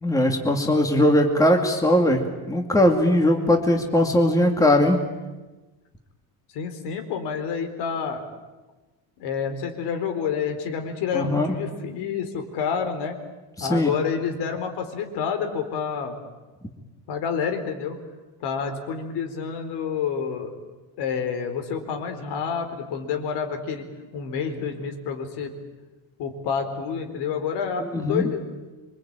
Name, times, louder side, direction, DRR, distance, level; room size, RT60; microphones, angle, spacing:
voice 1, 0.0-5.0 11.1-11.5 13.6-13.9 27.9-28.2, left 1 dB, 10° left, 3 dB, 2.3 m, -20 dB
voice 2, 6.5-8.2 9.2-13.2 13.6-16.2 17.1-18.0 18.4-20.6 21.0-23.9 24.1-25.5 26.2-28.5, left 6 dB, 65° left, 6 dB, 4.3 m, -28 dB
26.5 x 24.0 x 8.9 m, 1.2 s
cardioid pair, 155°, 42 cm